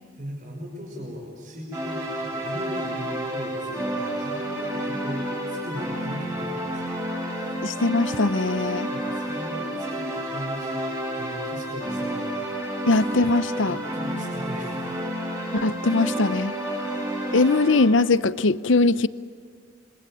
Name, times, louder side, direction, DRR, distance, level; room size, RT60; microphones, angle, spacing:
voice 1, 0.2-7.4 8.9-10.9 11.2-12.5 13.6-14.9, equal, 40° right, 0 dB, 5.6 m, -38 dB
sound 1, 1.7-17.9, right 1 dB, 15° right, 6.6 m, -30 dB
voice 2, 7.6-8.9 12.9-13.8 15.5-16.5 17.3-19.1, left 3 dB, 70° left, 15 dB, 0.7 m, -21 dB
26.0 x 24.0 x 9.0 m, 2.1 s
head